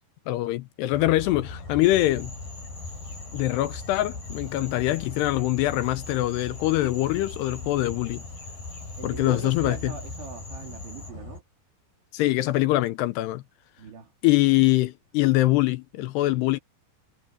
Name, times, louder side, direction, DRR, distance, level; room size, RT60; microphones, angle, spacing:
voice 1, 0.3-2.3 3.3-8.2 9.0-9.9 12.1-13.4 14.2-16.6, left 17 dB, 80° left, 2.6 m, -23 dB
sound 1, 0.9-11.4, left 3 dB, 50° left, 9.7 m, -39 dB
Cricket / Frog, 1.8-11.1, left 2 dB, 35° left, 8.8 m, -46 dB
voice 2, 9.0-11.4 13.8-14.1, right 7 dB, 85° right, 6.5 m, -41 dB
omnidirectional pair, 5.2 m